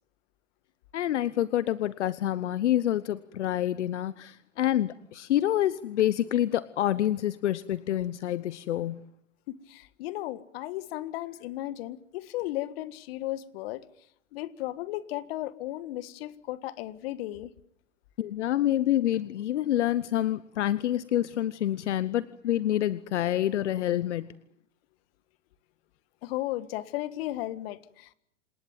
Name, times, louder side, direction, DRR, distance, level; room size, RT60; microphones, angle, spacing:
voice 1, 0.9-9.0 18.2-24.3, left 12 dB, 75° left, 1.0 m, -27 dB
voice 2, 9.5-13.9 14.3-17.5 26.2-28.1, left 15 dB, 55° left, 1.8 m, -35 dB
27.5 x 19.5 x 9.1 m
hypercardioid pair, 115°, 36 cm